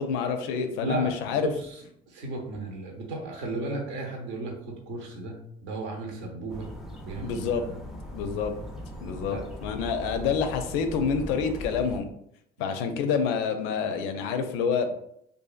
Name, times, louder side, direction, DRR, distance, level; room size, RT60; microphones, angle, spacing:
voice 1, 0.0-1.5 7.2-7.6 8.1-8.5 9.0-12.1 12.6-14.9, left 6 dB, 80° left, 7 dB, 0.4 m, -27 dB
voice 2, 1.4-1.8 2.1-6.7 7.0-7.5 9.3-9.5 12.6-12.7, right 3 dB, 70° right, 1 dB, 0.8 m, -35 dB
sound 1, 6.5-12.0, equal, ahead, 0.4 m, -39 dB
2.6 x 2.4 x 2.3 m, 0.72 s
supercardioid pair, 95°, 20 cm